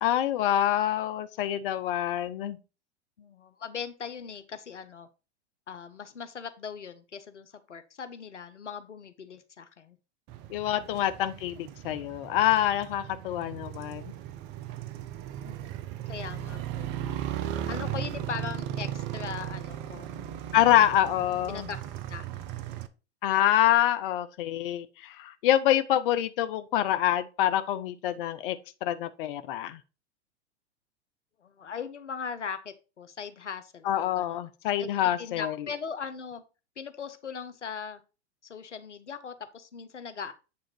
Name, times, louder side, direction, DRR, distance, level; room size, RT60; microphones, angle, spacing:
voice 1, 0.0-2.6 10.5-14.1 20.5-21.7 23.2-28.6 28.8-29.8 33.8-35.5, left 12 dB, 50° left, 0.7 m, -26 dB
voice 2, 3.2-5.1 5.7-10.0 10.8-10.9 15.5-15.8 16.1-16.9 17.7-20.1 21.5-21.8 22.1-22.6 31.4-34.4 34.8-34.9 35.2-36.4 36.8-38.0 38.4-40.3, left 6 dB, 85° left, 0.9 m, -39 dB
Motorcycle, 10.3-22.9, right 11 dB, 30° right, 0.6 m, -37 dB
8.7 x 3.8 x 4.4 m
figure-of-eight pair, 100°, 35 cm